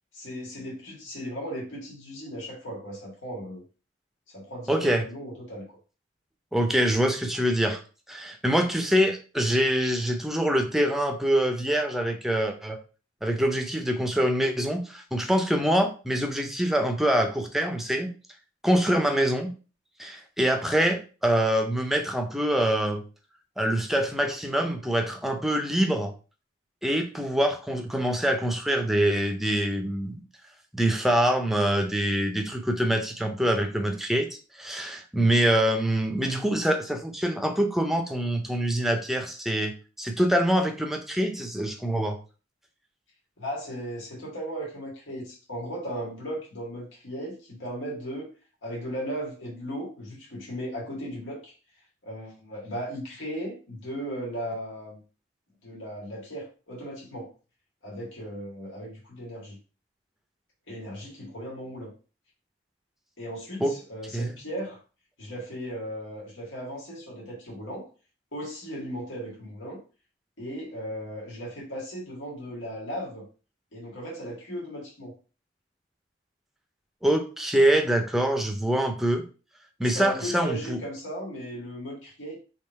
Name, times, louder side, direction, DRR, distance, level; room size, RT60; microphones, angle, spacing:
voice 1, 0.1-3.6 4.3-5.7 43.4-48.3 48.6-51.5 52.0-55.0 55.6-57.3 57.8-59.6 60.7-61.9 63.2-64.8 65.2-67.9 68.3-69.8 70.4-73.3 73.7-75.1 79.8-82.4, equal, 80° left, -3 dB, 1.7 m, -36 dB
voice 2, 4.7-5.0 6.5-7.8 8.1-12.8 13.2-18.1 18.6-19.5 20.0-23.0 23.6-26.1 26.8-30.2 30.7-34.3 34.6-39.7 40.0-42.2 63.6-63.7 64.1-64.3 77.0-79.2 79.8-80.8, right 1 dB, ahead, 5 dB, 0.6 m, -25 dB
3.6 x 3.0 x 4.4 m, 0.35 s
head